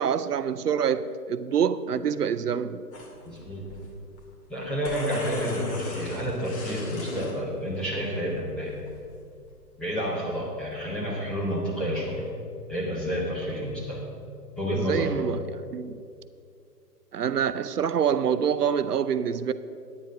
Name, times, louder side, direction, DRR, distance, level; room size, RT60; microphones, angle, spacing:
voice 1, 0.0-2.8 14.7-16.0 17.1-19.5, right 8 dB, 70° right, 0.6 m, -26 dB
sound 1, 2.9-3.9 4.2-4.3 4.6-7.4 8.0-8.5 8.9-9.2 9.5-9.6, left 2 dB, 40° left, 2.4 m, -36 dB
voice 2, 3.3-3.7 4.5-8.7 9.8-12.3 12.7-14.1 14.6-15.3, equal, ahead, 0.6 m, -30 dB
9.4 x 9.3 x 5.0 m
figure-of-eight pair, 125°, 49 cm